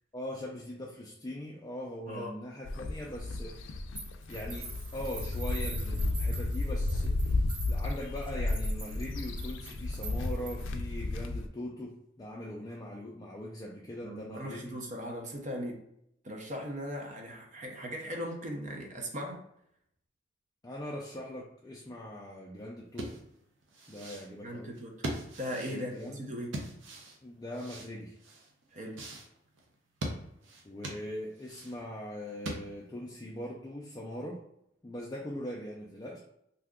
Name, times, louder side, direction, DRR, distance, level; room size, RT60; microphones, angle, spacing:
voice 1, 0.1-3.6 4.3-14.7 20.6-23.2 23.9-24.8 25.7-26.2 27.2-28.2 30.6-34.4 34.8-36.2, left 1 dB, 20° left, -4 dB, 0.4 m, -41 dB
sound 1, 2.6-11.5, left 2 dB, 85° left, 0.4 m, -33 dB
sound 2, 4.0-10.8, right 3 dB, 25° right, 1.1 m, -46 dB
voice 2, 14.0-15.8 16.2-19.4 24.4-25.1 25.4-26.5 28.7-29.0, equal, 40° right, 1 dB, 0.6 m, -38 dB
sound 3, 22.9-33.0, right 1 dB, 90° right, 0.7 m, -42 dB
2.7 x 2.3 x 3.5 m, 0.75 s
head